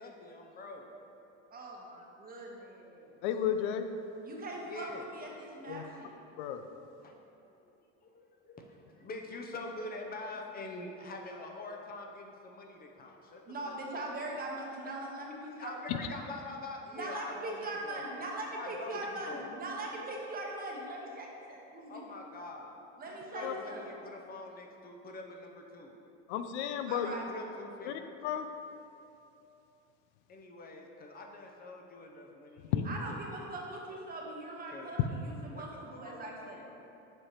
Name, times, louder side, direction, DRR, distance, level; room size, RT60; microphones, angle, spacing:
voice 1, 0.0-0.9 4.6-5.1 7.0-7.1 7.5-7.7 8.0-14.0 15.6-18.1 18.5-19.5 21.9-22.8 23.1-25.9 27.3-28.1 30.3-33.0 33.8-34.0 34.7-35.0 35.5-36.8, left 2 dB, 25° left, 1 dB, 0.6 m, -45 dB
voice 2, 1.5-3.2 4.2-6.1 13.5-15.7 16.9-22.0 23.0-23.8 26.9-27.3 32.8-36.6, right 2 dB, 25° right, -1 dB, 1.0 m, -41 dB
voice 3, 3.2-3.9 5.7-5.8 6.4-6.6 23.4-23.5 26.3-27.1 27.9-28.0 28.2-28.5 32.7-32.9 35.0-35.1, left 9 dB, 80° left, 8 dB, 0.5 m, -32 dB
7.4 x 5.0 x 2.9 m, 2.8 s
supercardioid pair, 110°, 34 cm